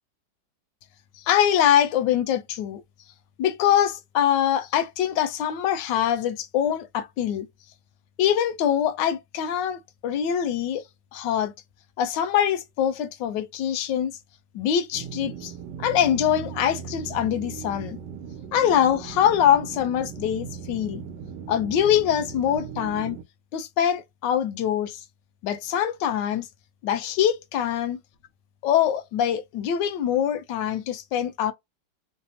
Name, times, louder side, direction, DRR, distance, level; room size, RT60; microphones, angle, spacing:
voice 1, 1.1-2.8 3.4-7.5 8.2-10.8 11.1-11.5 12.0-14.1 14.5-15.5 15.8-18.0 18.5-21.0 21.5-23.2 23.5-25.0 25.4-26.5 26.8-28.0 28.6-31.5, left 10 dB, 85° left, 1.2 m, -24 dB
sound 1, 14.9-23.2, right 7 dB, 80° right, 1.3 m, -38 dB
3.3 x 2.0 x 2.7 m
omnidirectional pair, 1.9 m